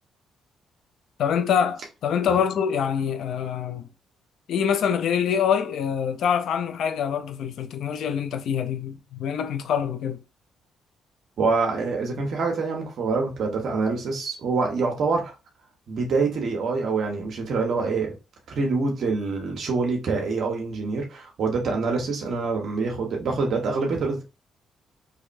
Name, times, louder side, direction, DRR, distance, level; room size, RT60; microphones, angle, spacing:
voice 1, 1.2-3.9 4.5-10.2, left 8 dB, 70° left, 0.5 m, -25 dB
voice 2, 11.4-15.3 15.9-18.1 18.5-24.3, right 4 dB, 60° right, 1.1 m, -25 dB
3.9 x 3.1 x 2.6 m
cardioid pair, 90°, 0 cm